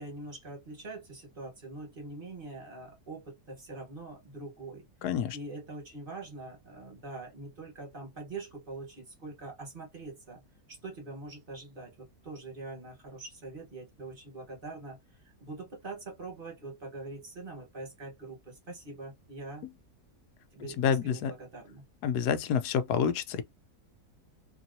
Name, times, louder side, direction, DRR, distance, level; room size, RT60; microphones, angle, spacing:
voice 1, 0.0-4.9 5.3-10.4 10.7-19.7 20.5-21.8, right 2 dB, 35° right, 1.3 m, -44 dB
voice 2, 5.0-5.4 20.8-21.3 22.0-23.4, left 7 dB, 85° left, 1.1 m, -28 dB
3.0 x 2.8 x 2.5 m
omnidirectional pair, 1.7 m